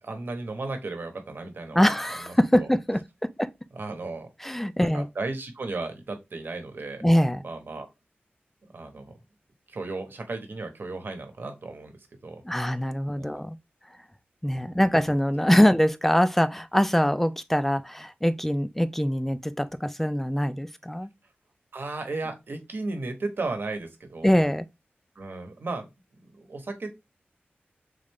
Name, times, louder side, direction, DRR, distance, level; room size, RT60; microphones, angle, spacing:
voice 1, 0.0-2.7 3.7-4.3 4.8-7.0 7.4-7.9 8.7-9.2 9.7-12.0 12.2-12.4 13.1-13.4 14.7-14.9 21.7-24.4 25.1-25.9 26.2-26.9, right 3 dB, 60° right, 1.0 m, -35 dB
voice 2, 1.7-3.5 4.4-5.1 7.0-7.4 12.5-13.6 14.4-21.1 24.2-24.7, equal, 5° left, 0.3 m, -23 dB
3.8 x 3.2 x 3.5 m
wide cardioid pair, 110°, 4 cm